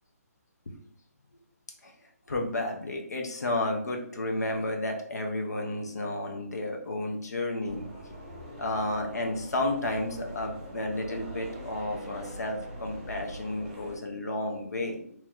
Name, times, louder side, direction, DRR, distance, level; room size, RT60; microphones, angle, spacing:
voice 1, 2.3-7.8 8.6-15.1, left 1 dB, 85° left, 2 dB, 1.1 m, -32 dB
sound 1, 7.6-14.0, equal, 25° right, 1.5 m, -43 dB
3.1 x 3.0 x 3.7 m, 0.62 s
hypercardioid pair, 170°, 9 cm